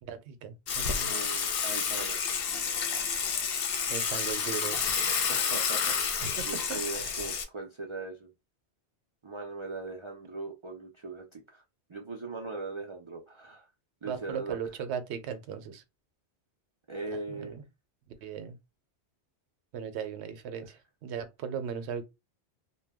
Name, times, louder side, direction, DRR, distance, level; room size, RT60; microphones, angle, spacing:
voice 1, 0.0-1.1 3.9-4.9 6.2-7.1 14.1-15.8 17.3-17.6 18.2-18.6 19.7-22.0, right 7 dB, 75° right, 0.8 m, -38 dB
Water / Water tap faucet / Sink (filling or washing), 0.7-7.4, left 6 dB, 60° left, 0.7 m, -30 dB
voice 2, 1.0-2.2 5.3-8.3 9.2-11.6 11.9-13.7 14.0-14.6 16.9-17.6, right 3 dB, 50° right, 0.3 m, -40 dB
2.2 x 2.1 x 3.4 m
omnidirectional pair, 1.2 m